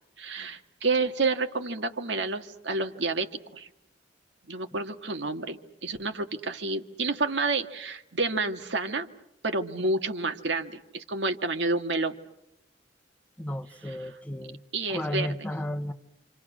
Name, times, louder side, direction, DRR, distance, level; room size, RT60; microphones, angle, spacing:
voice 1, 0.2-3.7 4.5-9.1 9.4-12.2 13.8-14.1 14.7-15.3, right 3 dB, 80° right, 6 dB, 1.8 m, -29 dB
voice 2, 13.4-14.6 14.9-15.9, left 1 dB, 10° left, 7 dB, 1.0 m, -33 dB
28.0 x 27.5 x 6.2 m, 0.81 s
head